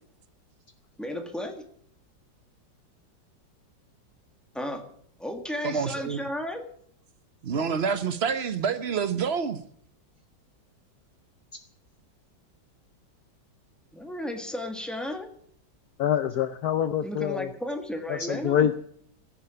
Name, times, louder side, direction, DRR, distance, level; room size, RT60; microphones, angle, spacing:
voice 1, 1.0-1.6 4.5-4.9 5.2-6.7 13.9-15.3 17.0-18.7, left 1 dB, ahead, 1.7 m, -34 dB
voice 2, 5.6-6.2 7.4-9.6, right 6 dB, 40° right, 1.1 m, -27 dB
voice 3, 16.0-17.5 18.1-18.8, left 9 dB, 65° left, 1.1 m, -25 dB
16.5 x 7.0 x 9.9 m
omnidirectional pair, 2.0 m